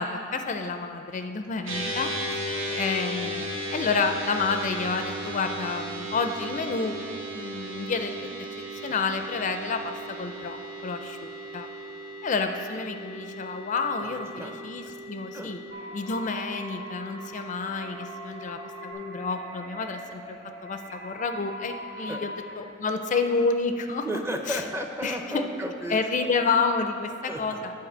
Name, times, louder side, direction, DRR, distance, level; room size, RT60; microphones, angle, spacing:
voice 1, 0.0-2.1 2.8-7.0 7.3-8.1 8.8-11.7 12.2-15.6 15.9-24.1 24.5-24.6 25.0-25.5 25.9-27.7, left 4 dB, 40° left, 7 dB, 0.4 m, -29 dB
sound 1, 1.7-18.9, right 1 dB, 90° right, 1.4 m, -36 dB
voice 2, 14.1-14.6 14.8-14.9 15.3-15.6 22.1-22.2 24.0-26.1 27.3-27.6, equal, 15° right, 4 dB, 0.5 m, -34 dB
sound 2, 15.7-22.5, equal, 60° right, 1.9 m, -42 dB
8.5 x 4.6 x 6.7 m, 2.4 s
head